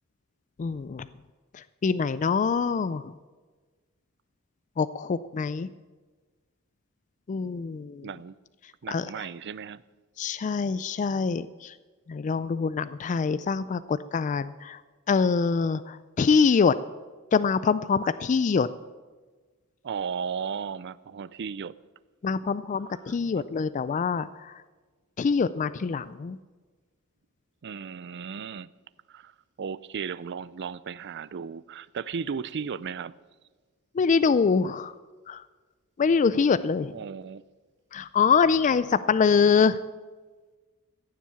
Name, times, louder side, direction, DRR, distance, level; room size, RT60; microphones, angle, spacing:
voice 1, 0.6-1.1 1.5-3.1 4.8-5.7 7.3-8.1 8.9-9.3 10.2-11.7 12.1-14.8 15.1-16.8 17.3-18.7 22.2-24.5 25.2-26.4 33.9-34.9 35.3-35.4 36.0-37.0 37.9-39.8, left 5 dB, 35° left, 0.3 m, -24 dB
voice 2, 8.0-8.4 8.8-9.8 19.8-21.7 27.6-28.7 29.1-33.1 36.9-37.4, right 6 dB, 55° right, 0.4 m, -35 dB
15.0 x 7.4 x 8.5 m
head